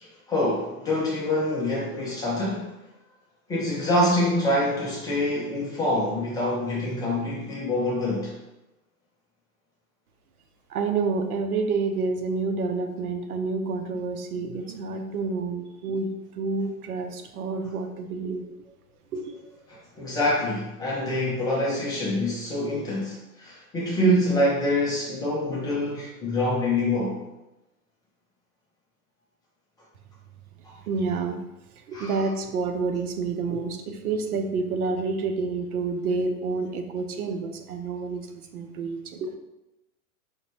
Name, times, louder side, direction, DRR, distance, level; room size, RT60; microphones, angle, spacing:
voice 1, 0.3-2.7 3.5-8.3 19.7-27.2 31.9-32.1, left 1 dB, 10° left, -6 dB, 0.3 m, -25 dB
voice 2, 10.7-18.4 19.1-19.3 30.9-31.5 31.8-39.3, right 4 dB, 80° right, 6 dB, 0.7 m, -29 dB
5.0 x 2.2 x 2.9 m, 0.96 s
hypercardioid pair, 115°, 44 cm